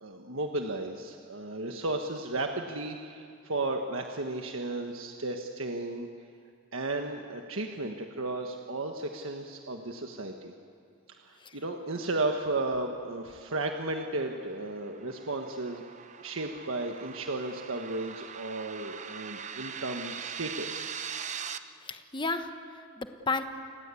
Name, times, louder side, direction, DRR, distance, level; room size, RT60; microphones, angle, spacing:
voice 1, 0.0-6.1 6.7-10.5 11.1-15.8 16.2-20.9, right 2 dB, 75° right, 3 dB, 1.5 m, -34 dB
sound 1, 13.9-21.6, right 7 dB, 35° right, 0.8 m, -42 dB
voice 2, 21.8-23.4, left 3 dB, 20° left, 7 dB, 1.2 m, -33 dB
29.0 x 21.0 x 8.4 m, 2.3 s
head